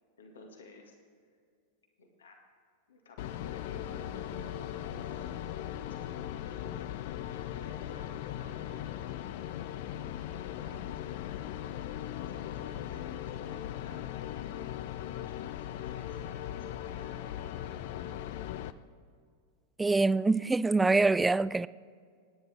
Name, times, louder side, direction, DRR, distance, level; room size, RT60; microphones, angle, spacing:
voice 1, 0.2-0.9 2.0-2.4 2.9-6.7 7.3-8.8 9.8-11.1 12.3-17.5, left 2 dB, 65° left, 2.1 m, -52 dB
sound 1, 3.2-18.7, left 11 dB, 50° left, 0.5 m, -39 dB
voice 2, 19.8-21.7, right 3 dB, 10° right, 0.3 m, -25 dB
27.5 x 10.0 x 3.5 m
figure-of-eight pair, 90°, 0 cm